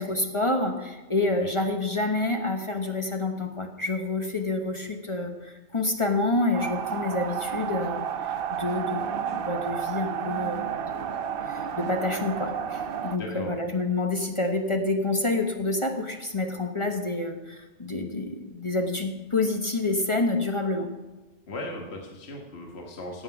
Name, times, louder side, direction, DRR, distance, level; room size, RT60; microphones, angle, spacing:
voice 1, 0.0-11.1 11.5-20.9, left 2 dB, 30° left, 4 dB, 1.0 m, -28 dB
sound 1, 6.5-13.2, right 8 dB, 55° right, 0.8 m, -31 dB
voice 2, 13.2-13.6 21.5-23.2, left 1 dB, 60° left, 0 dB, 1.7 m, -37 dB
16.5 x 7.8 x 5.9 m, 1.2 s
omnidirectional pair, 1.2 m